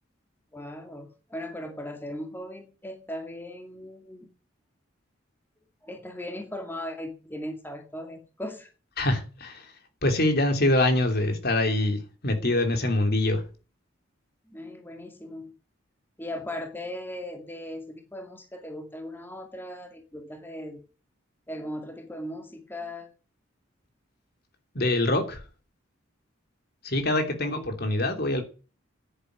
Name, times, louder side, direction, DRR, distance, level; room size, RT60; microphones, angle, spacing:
voice 1, 0.5-4.3 5.8-8.7 14.5-15.5 16.2-20.8 21.5-23.1 27.4-27.6, left 1 dB, 10° left, 2.1 m, -38 dB
voice 2, 9.0-9.7 10.0-13.4 24.7-25.4 26.8-28.4, left 1 dB, 50° left, 3.1 m, -24 dB
10.5 x 10.0 x 9.4 m
head